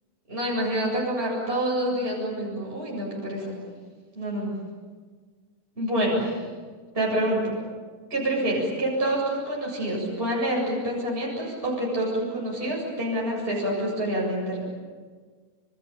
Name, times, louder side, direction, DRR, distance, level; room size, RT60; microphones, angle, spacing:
voice 1, 0.3-3.6 4.1-4.6 5.8-6.4 6.9-7.5 8.1-14.6, right 1 dB, 15° right, -3 dB, 7.7 m, -27 dB
28.5 x 28.0 x 7.2 m, 1.5 s
omnidirectional pair, 4.1 m